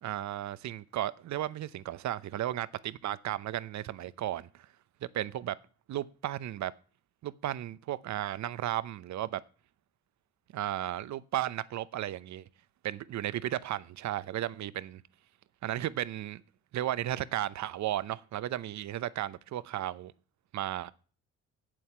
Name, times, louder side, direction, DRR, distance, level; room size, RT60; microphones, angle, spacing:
voice 1, 0.0-4.7 5.1-5.6 5.9-6.7 7.2-9.4 10.5-12.4 12.8-15.0 15.6-16.4 16.7-20.1 20.5-20.9, right 13 dB, 65° right, 0.8 m, -34 dB
8.5 x 7.8 x 7.0 m
cardioid pair, 90°, 30 cm